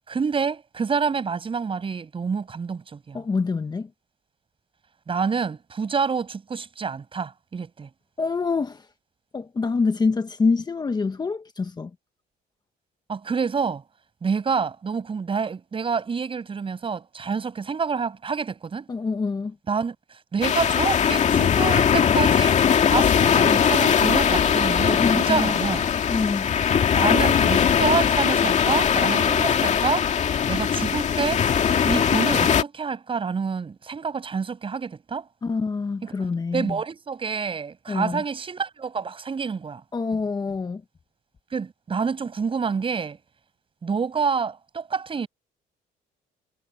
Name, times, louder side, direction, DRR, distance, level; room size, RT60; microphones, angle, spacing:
voice 1, 0.1-3.2 5.1-7.9 13.1-13.8 14.2-18.9 19.7-19.9 20.3-25.8 26.9-30.1 30.5-35.2 36.0-36.1 36.5-39.8 41.5-43.2 43.8-45.3, right 5 dB, 30° right, 6.6 m, -27 dB
voice 2, 3.1-3.9 8.2-8.9 9.3-11.9 18.9-19.5 25.0-25.5 26.1-26.5 35.4-36.8 37.9-38.2 39.9-40.8, left 4 dB, 25° left, 1.2 m, -26 dB
sound 1, 20.4-32.6, left 7 dB, 45° left, 2.2 m, -20 dB
cardioid pair, 110°, 17 cm